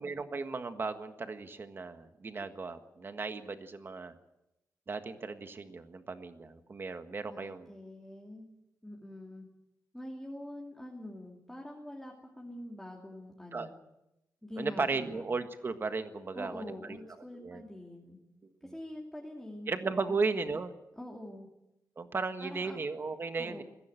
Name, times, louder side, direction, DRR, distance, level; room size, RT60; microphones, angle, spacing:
voice 1, 0.0-4.1 4.9-7.7 13.5-13.7 14.6-17.0 17.4-17.6 18.6-18.7 19.7-20.7 22.0-23.6, right 4 dB, 35° right, 8 dB, 1.6 m, -35 dB
voice 2, 7.3-8.5 8.8-9.5 9.9-13.8 14.4-15.2 16.3-18.2 18.6-19.7 20.1-20.2 21.0-21.5 22.4-22.8 23.4-23.6, left 1 dB, 5° left, -1 dB, 2.7 m, -45 dB
21.5 x 15.5 x 9.1 m, 0.90 s
wide cardioid pair, 155°, 6 cm